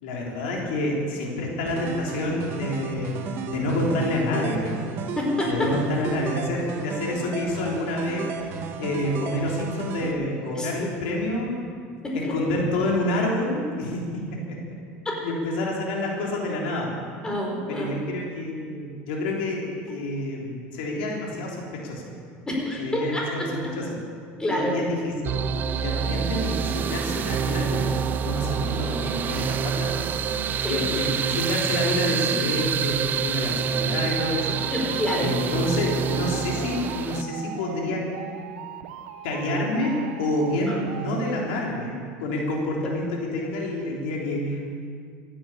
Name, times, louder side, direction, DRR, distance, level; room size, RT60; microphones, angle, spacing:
voice 1, 0.0-3.1 3.5-4.8 5.4-8.3 8.8-11.5 12.1-14.4 15.2-16.9 17.7-22.0 22.8-24.0 24.5-28.0 28.2-30.1 30.7-34.6 35.2-38.1 39.2-44.6, left 1 dB, 85° left, -2 dB, 3.6 m, -28 dB
sound 1, 1.6-10.1, right 5 dB, 55° right, 1.8 m, -34 dB
voice 2, 5.1-5.7 10.5-10.7 12.0-12.4 15.0-15.2 17.2-17.9 22.5-23.7 24.4-24.8 30.6-30.9 34.7-35.3 40.7-40.8, left 1 dB, 15° left, -1 dB, 4.8 m, -27 dB
sound 2, 25.2-37.2, right 7 dB, 35° right, 0.7 m, -27 dB
sound 3, 25.8-41.8, right 9 dB, 85° right, 1.0 m, -40 dB
15.5 x 10.5 x 8.6 m, 2.1 s
supercardioid pair, 120°, 5 cm